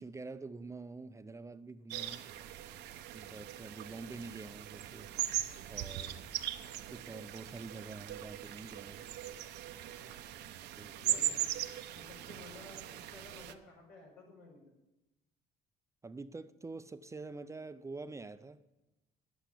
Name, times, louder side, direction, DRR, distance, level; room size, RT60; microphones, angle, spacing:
voice 1, 0.0-2.3 3.1-5.1 5.7-6.3 6.9-9.1 10.8-11.2 16.0-18.6, right 3 dB, 15° right, 0.5 m, -46 dB
sound 1, 1.9-13.5, right 12 dB, 80° right, 0.8 m, -40 dB
voice 2, 9.7-10.2 11.0-11.5 12.0-14.7, left 2 dB, 85° left, 5.5 m, -54 dB
10.5 x 8.2 x 8.5 m
cardioid pair, 110°, 17 cm